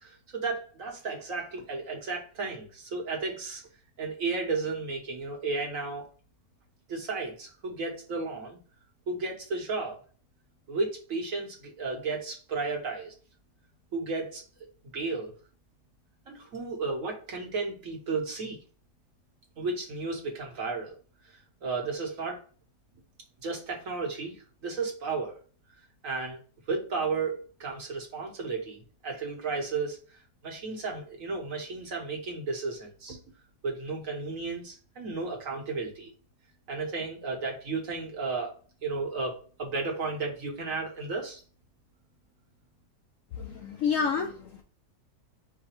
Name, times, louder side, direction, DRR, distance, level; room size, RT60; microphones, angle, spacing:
voice 1, 0.0-3.6 4.0-6.1 6.9-8.6 9.1-10.0 10.7-13.1 13.9-14.4 14.9-15.3 16.3-18.6 19.6-20.9 21.6-22.4 23.4-24.4 24.6-25.4 26.0-26.4 26.7-30.0 30.4-33.2 33.6-36.1 36.7-38.5 38.8-41.4, right 4 dB, 55° right, 0 dB, 1.3 m, -33 dB
voice 2, 43.4-44.6, left 6 dB, 70° left, 3 dB, 0.8 m, -29 dB
4.8 x 2.2 x 4.3 m, 0.39 s
omnidirectional pair, 1.9 m